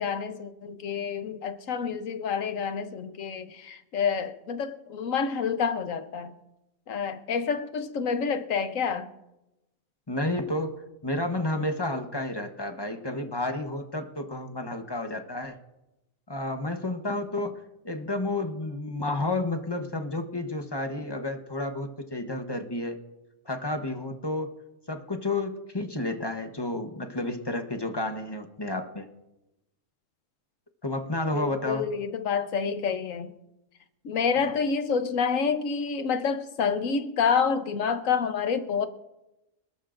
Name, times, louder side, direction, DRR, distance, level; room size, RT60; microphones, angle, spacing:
voice 1, 0.0-6.3 6.9-9.1 31.3-33.3 34.0-38.9, left 6 dB, 70° left, 1.3 m, -28 dB
voice 2, 10.1-15.6 16.3-17.6 17.8-23.0 23.5-24.5 24.9-29.1 30.8-31.9, left 2 dB, 20° left, 0.9 m, -31 dB
25.5 x 13.0 x 2.6 m
omnidirectional pair, 1.5 m